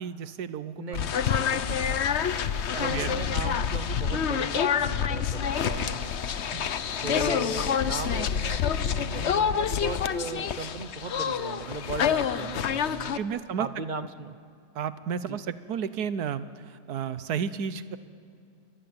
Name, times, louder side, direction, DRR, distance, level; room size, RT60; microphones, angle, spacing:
voice 1, 0.0-0.8 1.4-1.6 2.7-3.2 6.5-6.7 13.1-13.7 14.7-18.0, right 7 dB, 80° right, 14 dB, 1.5 m, -32 dB
voice 2, 0.8-2.0 2.3-6.1 7.0-13.2 13.6-14.4 15.3-15.4, right 4 dB, 40° right, 12 dB, 0.7 m, -37 dB
sound 1, 0.9-13.2, left 8 dB, 50° left, 1.0 m, -27 dB
29.0 x 23.0 x 8.8 m, 2.3 s
omnidirectional pair, 1.6 m